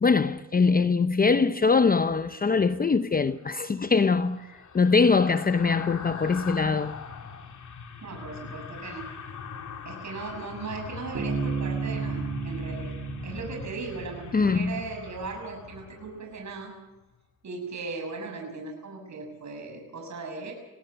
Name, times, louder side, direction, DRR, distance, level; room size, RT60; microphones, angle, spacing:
voice 1, 0.0-7.0 14.3-14.8, left 4 dB, 30° left, 0.7 m, -23 dB
sound 1, 3.3-16.6 17.0-17.2, left 5 dB, 65° left, 3.0 m, -42 dB
voice 2, 8.0-9.1 9.8-12.9 13.2-16.7 17.4-20.5, right 3 dB, 60° right, 6.6 m, -38 dB
Bass guitar, 11.1-14.8, right 5 dB, 40° right, 4.8 m, -33 dB
20.5 x 17.5 x 8.1 m
cardioid pair, 80°, 32 cm